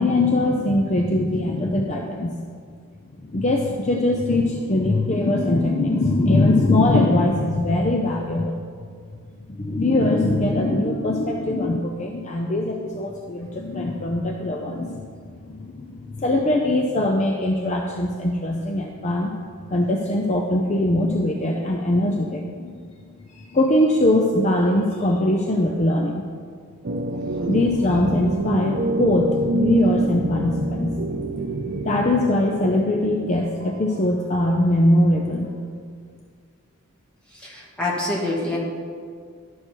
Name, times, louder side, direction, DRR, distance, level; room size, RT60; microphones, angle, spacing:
voice 1, 0.0-2.4 3.2-8.6 9.5-19.3 19.7-22.7 23.3-26.2 27.5-31.0 31.8-35.5, left 1 dB, 35° left, 1 dB, 0.6 m, -21 dB
sound 1, 26.8-34.0, right 1 dB, 50° right, 0.5 m, -26 dB
voice 2, 37.4-38.6, left 2 dB, 5° left, -5 dB, 1.8 m, -26 dB
11.5 x 6.3 x 4.5 m, 2.1 s
head